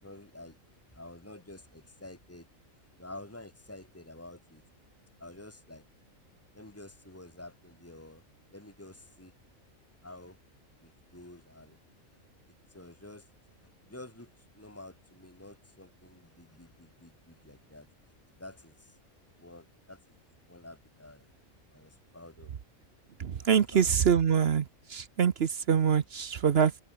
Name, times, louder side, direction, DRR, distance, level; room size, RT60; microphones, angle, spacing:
voice 1, 0.0-0.6 0.9-2.5 3.0-4.6 5.2-5.8 6.5-8.2 8.5-9.3 10.0-10.4 10.8-11.8 12.7-13.6 13.8-17.9 18.3-19.0 19.4-20.0 20.5-21.3 21.7-22.5 23.4-24.1, left 1 dB, 10° left, 3.7 m, -49 dB
voice 2, 23.2-24.6 24.9-26.8, right 7 dB, 55° right, 1.0 m, -25 dB
omnidirectional pair, 1.4 m